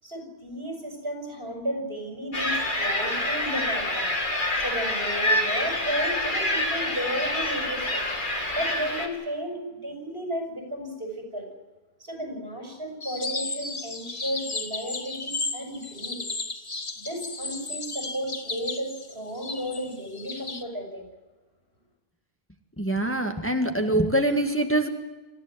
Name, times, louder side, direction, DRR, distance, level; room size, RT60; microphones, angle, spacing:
voice 1, 0.0-4.1 4.6-8.0 8.5-11.5 12.0-16.2 17.0-21.1, equal, 70° right, 3 dB, 6.5 m, -33 dB
sound 1, 2.3-9.1, left 1 dB, 50° left, 2.9 m, -27 dB
sound 2, 13.0-20.6, left 3 dB, 35° left, 1.5 m, -34 dB
voice 2, 22.8-24.9, right 1 dB, 10° left, 5 dB, 1.8 m, -24 dB
27.0 x 14.5 x 9.4 m, 1.2 s
omnidirectional pair, 1.0 m